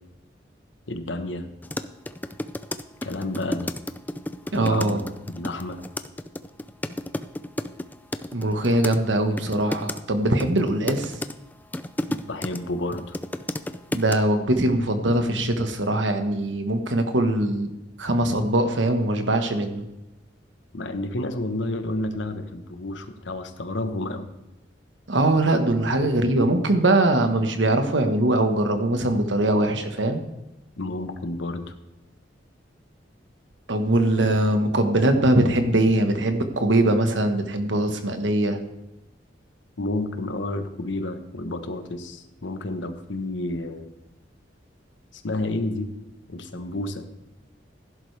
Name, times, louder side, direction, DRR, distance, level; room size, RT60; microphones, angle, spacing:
voice 1, 0.9-1.5 3.0-3.7 4.5-5.0 5.3-5.8 12.1-13.2 20.7-24.3 30.8-31.7 39.8-43.9 45.1-45.9 46.3-47.1, left 2 dB, 85° left, 8 dB, 1.2 m, -30 dB
sound 1, 1.6-9.0 9.4-10.0 10.4-12.6 12.9-14.1, left 1 dB, 10° left, 0.4 m, -31 dB
voice 2, 4.5-5.0 8.3-11.2 13.9-17.7 18.0-19.8 25.1-30.2 33.7-38.6, right 1 dB, 85° right, 7 dB, 1.4 m, -22 dB
16.0 x 11.0 x 3.4 m, 0.96 s
head